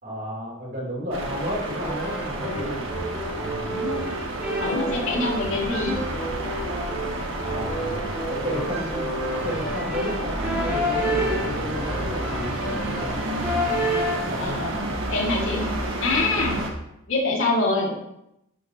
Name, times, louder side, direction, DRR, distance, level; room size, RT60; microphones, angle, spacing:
voice 1, 0.0-2.8 7.4-7.9 8.2-9.1 9.4-13.2 14.2-14.6, equal, 45° right, -4 dB, 3.3 m, -32 dB
sound 1, 1.1-16.7, right 1 dB, 65° right, 1.6 m, -30 dB
sound 2, 1.8-14.4, equal, 5° right, 2.2 m, -30 dB
voice 2, 3.7-4.1 4.6-5.9 14.4-15.7 16.0-16.6 17.1-17.9, left 3 dB, 70° left, -3 dB, 2.2 m, -25 dB
12.0 x 7.5 x 2.9 m, 0.83 s
head